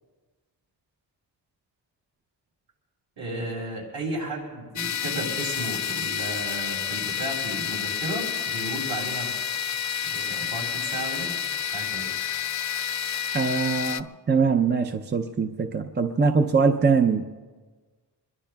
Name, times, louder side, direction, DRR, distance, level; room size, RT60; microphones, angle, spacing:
voice 1, 3.2-9.3 10.0-11.3 11.7-12.1, right 1 dB, 60° right, -2 dB, 5.8 m, -34 dB
sound 1, 4.8-14.0, left 9 dB, 45° left, 0.4 m, -29 dB
voice 2, 13.3-17.3, right 5 dB, 25° right, 6 dB, 0.5 m, -22 dB
26.0 x 22.0 x 2.3 m, 1.4 s
wide cardioid pair, 170°, 43 cm